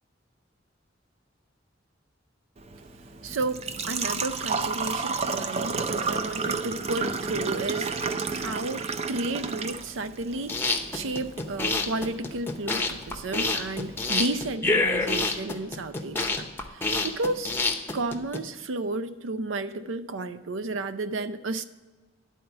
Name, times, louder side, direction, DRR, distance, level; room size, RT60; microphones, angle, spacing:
Engine / Trickle dribble / Fill (with liquid), 2.6-14.5, right 4 dB, 35° right, 0.5 m, -32 dB
voice 1, 3.2-16.5 16.7-17.5 17.9-21.6, right 2 dB, 80° right, 11 dB, 0.6 m, -32 dB
sound 1, 10.3-18.4, left 3 dB, 10° left, 0.7 m, -27 dB
11.0 x 4.3 x 6.8 m, 1.3 s
head